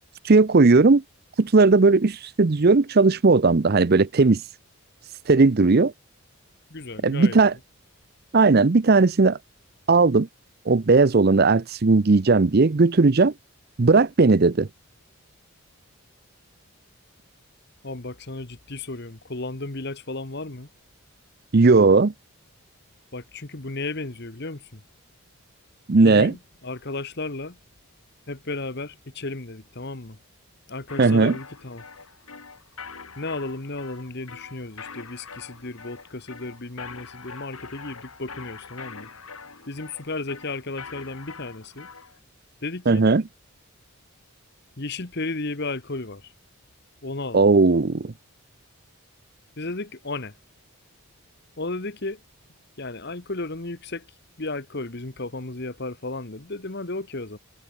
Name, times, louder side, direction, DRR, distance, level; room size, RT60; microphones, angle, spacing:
voice 1, 0.2-1.0 1.4-4.4 5.3-5.9 7.0-7.5 8.3-9.4 9.9-10.3 10.7-13.3 13.8-14.7 21.5-22.1 25.9-26.3 31.0-31.3 42.9-43.2 47.3-48.1, right 3 dB, 45° right, 0.6 m, -17 dB
voice 2, 6.7-7.4 17.8-20.7 23.1-24.8 26.0-27.6 28.3-30.2 30.7-31.8 33.2-39.1 39.7-41.9 42.6-43.1 44.8-46.3 47.0-47.5 49.6-50.3 51.6-52.2 52.8-54.1 54.4-57.4, left 2 dB, 50° left, 1.4 m, -34 dB
sound 1, 30.9-42.2, left 5 dB, 75° left, 3.3 m, -43 dB
head